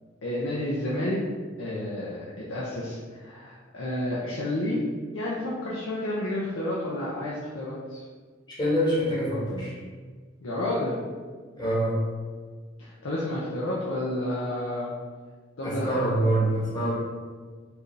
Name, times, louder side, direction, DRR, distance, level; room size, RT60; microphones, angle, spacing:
voice 1, 0.2-1.2 1.6-4.8 5.1-8.0 10.4-11.0 12.8-14.9 15.6-15.9, left 1 dB, 90° left, -6 dB, 0.6 m, -30 dB
voice 2, 8.6-9.7 11.6-12.0 15.6-16.9, right 1 dB, 20° left, -8 dB, 1.2 m, -25 dB
4.7 x 2.6 x 3.2 m, 1.5 s
head